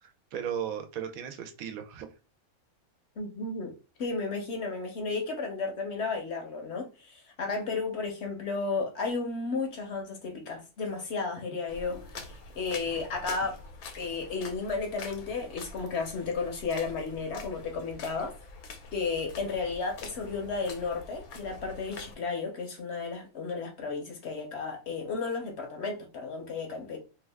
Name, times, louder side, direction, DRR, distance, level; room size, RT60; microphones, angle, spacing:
voice 1, 0.0-2.1, right 8 dB, 80° right, 1.0 m, -36 dB
voice 2, 3.2-3.7 4.0-13.6 14.0-18.3 18.9-27.0, left 4 dB, 60° left, 0.8 m, -33 dB
sound 1, 11.7-22.1, left 4 dB, 85° left, 1.1 m, -45 dB
2.7 x 2.3 x 3.3 m
omnidirectional pair, 1.5 m